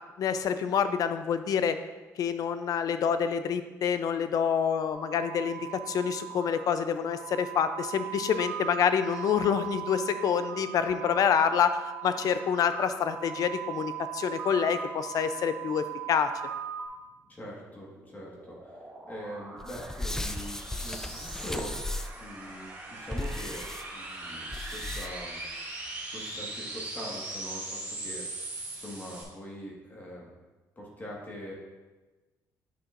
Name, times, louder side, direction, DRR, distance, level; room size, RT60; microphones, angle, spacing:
voice 1, 0.2-1.8 2.2-11.7 12.0-16.3, left 7 dB, 60° left, 10 dB, 0.5 m, -27 dB
sound 1, 4.9-16.9, right 11 dB, 45° right, 2.4 m, -39 dB
voice 2, 17.3-21.8 22.2-23.7 23.9-25.4 26.1-30.3 30.7-31.5, equal, 25° left, -3 dB, 1.6 m, -43 dB
sound 2, 17.7-29.2, right 2 dB, 30° right, 2.2 m, -41 dB
sound 3, 19.6-22.3 23.1-23.8 24.5-25.3, left 1 dB, 10° left, 0.4 m, -36 dB
9.4 x 5.7 x 2.6 m, 1.2 s
cardioid pair, 95°, 7 cm